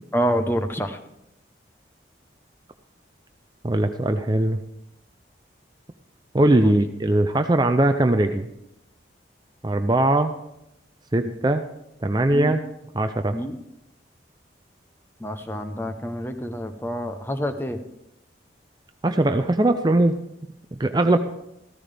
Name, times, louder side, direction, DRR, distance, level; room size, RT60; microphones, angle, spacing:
voice 1, 0.1-1.0 6.6-6.8 12.3-12.5 13.3-13.6 15.2-17.8, equal, 10° left, 7 dB, 0.8 m, -27 dB
voice 2, 3.6-4.6 6.3-8.5 9.6-10.3 11.1-11.6 12.0-12.6 12.9-13.4 19.0-20.2 20.8-21.2, right 1 dB, 20° right, 8 dB, 0.5 m, -20 dB
14.5 x 14.0 x 3.4 m, 0.84 s
head